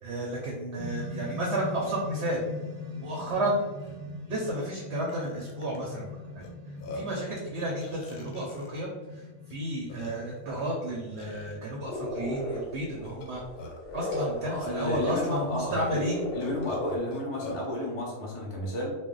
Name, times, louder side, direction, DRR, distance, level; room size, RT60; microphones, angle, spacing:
voice 1, 0.0-2.4 3.0-3.6 4.3-6.1 6.4-6.5 6.9-9.2 9.5-13.4 13.9-16.3, right 1 dB, 65° right, -2 dB, 0.7 m, -32 dB
sound 1, 0.8-12.2, left 2 dB, 90° right, 1.2 m, -41 dB
Burping eructation, 3.3-3.4 3.8-4.0 4.6-4.7 5.1-5.8 6.4-6.5 6.8-7.2 7.8-8.8 9.5-9.6 9.9-10.4 11.2-11.5 13.0-13.9 14.8-14.9 15.3-15.4 16.4-17.7, left 2 dB, 90° left, 1.1 m, -43 dB
sound 2, 11.9-17.0, left 1 dB, 60° left, 0.9 m, -36 dB
voice 2, 14.4-16.0 16.3-19.0, left 1 dB, 35° left, -4 dB, 0.5 m, -32 dB
2.5 x 2.0 x 3.7 m, 1.2 s
omnidirectional pair, 1.6 m